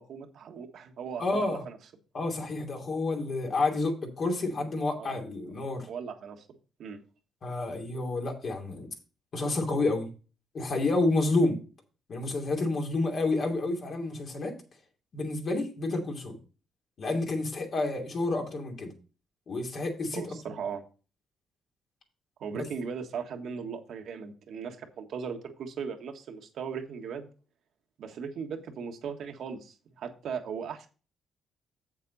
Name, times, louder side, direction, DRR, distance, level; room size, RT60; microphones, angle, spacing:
voice 1, 0.0-1.8 5.0-5.2 5.9-6.4 6.8-7.0 20.1-20.8 22.4-27.3 28.0-30.9, right 6 dB, 70° right, 1.5 m, -38 dB
voice 2, 1.2-1.6 2.1-5.9 7.4-8.9 9.3-10.1 10.5-11.6 12.1-14.5 15.1-16.4 17.0-18.9 19.5-20.2, left 2 dB, 50° left, 2.8 m, -29 dB
7.7 x 7.4 x 4.1 m
cardioid pair, 90°, 0 cm